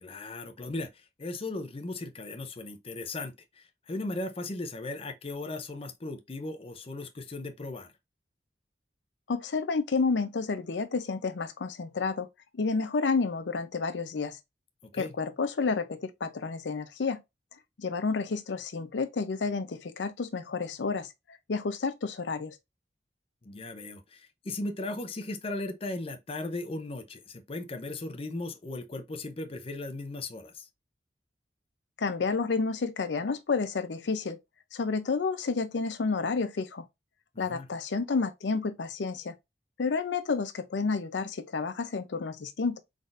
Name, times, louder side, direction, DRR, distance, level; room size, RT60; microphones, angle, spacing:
voice 1, 0.0-0.9 1.2-7.9 14.8-15.1 23.4-30.7 37.3-37.7, left 2 dB, 35° left, 0.6 m, -37 dB
voice 2, 9.3-12.3 12.5-14.4 14.9-17.2 17.8-21.1 21.5-22.6 32.0-34.4 34.7-36.9 37.4-39.3 39.8-42.8, left 4 dB, 80° left, 0.5 m, -30 dB
4.0 x 3.7 x 2.5 m
head